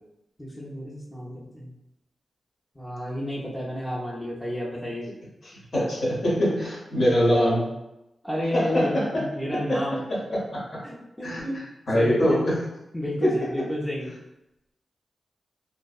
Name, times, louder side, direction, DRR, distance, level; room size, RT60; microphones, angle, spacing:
voice 1, 0.4-1.7 2.8-5.1 8.2-10.0 10.8-11.6 11.9-12.4 12.9-14.1, left 1 dB, 10° left, -6 dB, 0.5 m, -31 dB
voice 2, 5.4-7.7 8.5-9.3 9.5-10.8 11.2-11.4 11.9-12.6 13.2-13.3, equal, 60° left, -5 dB, 0.9 m, -24 dB
2.6 x 2.0 x 2.3 m, 0.91 s
cardioid pair, 80°, 0 cm